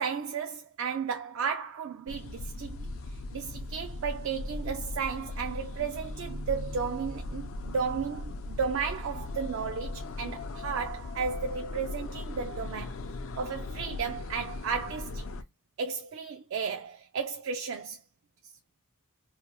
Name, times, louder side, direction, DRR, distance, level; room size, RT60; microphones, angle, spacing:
voice 1, 0.0-13.0 13.4-15.3 15.8-18.0, right 6 dB, 60° right, 0.4 m, -34 dB
sound 1, 2.1-15.4, left 2 dB, 60° left, 0.5 m, -38 dB
2.8 x 2.0 x 2.9 m
head